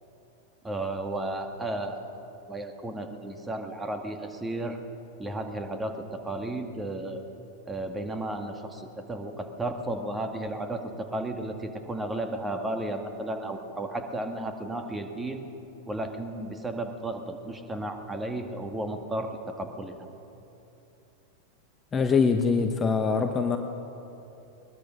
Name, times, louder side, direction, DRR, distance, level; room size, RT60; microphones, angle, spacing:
voice 1, 0.6-2.1 2.5-4.8 5.2-7.2 7.7-15.4 15.9-19.9, right 1 dB, 10° right, 5 dB, 1.9 m, -33 dB
voice 2, 21.9-23.6, left 5 dB, 20° left, 6 dB, 1.1 m, -23 dB
21.0 x 20.5 x 6.5 m, 2.9 s
figure-of-eight pair, 90°, 0 cm